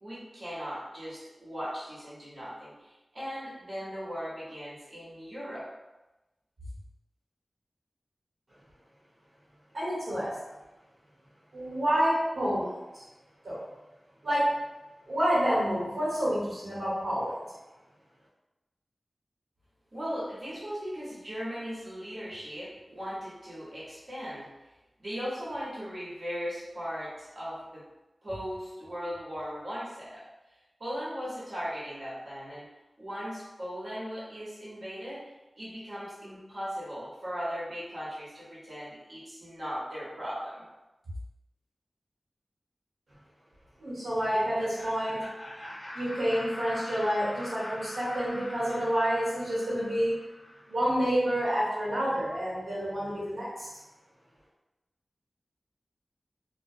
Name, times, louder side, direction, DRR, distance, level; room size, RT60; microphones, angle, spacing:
voice 1, 0.0-5.7 19.9-24.5 25.0-27.8 28.2-30.2 30.8-32.7 33.0-35.2 35.6-40.6, equal, 55° right, -9 dB, 1.2 m, -38 dB
voice 2, 9.7-10.3 11.5-13.0 13.4-13.6 14.2-14.5 15.1-17.4 43.8-45.2 45.9-50.1 50.7-53.7, equal, 75° right, -10 dB, 1.4 m, -28 dB
Laughter, 44.1-50.9, left 1 dB, 55° left, 0.5 m, -43 dB
2.5 x 2.3 x 2.7 m, 1.0 s
wide cardioid pair, 75°, 0 cm